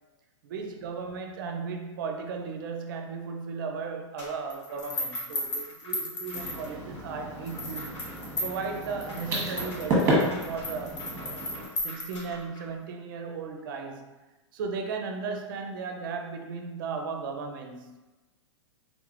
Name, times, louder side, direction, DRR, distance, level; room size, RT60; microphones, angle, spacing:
voice 1, 0.4-8.1 8.4-11.0 11.8-14.1 14.5-18.0, right 5 dB, 45° right, 5 dB, 0.5 m, -36 dB
sound 1, 4.2-7.0 7.5-12.6, left 1 dB, 70° left, 1.2 m, -36 dB
sound 2, 6.3-11.6, right 1 dB, 20° right, 1.0 m, -31 dB
3.5 x 3.2 x 2.5 m, 1.1 s
supercardioid pair, 170°, 16 cm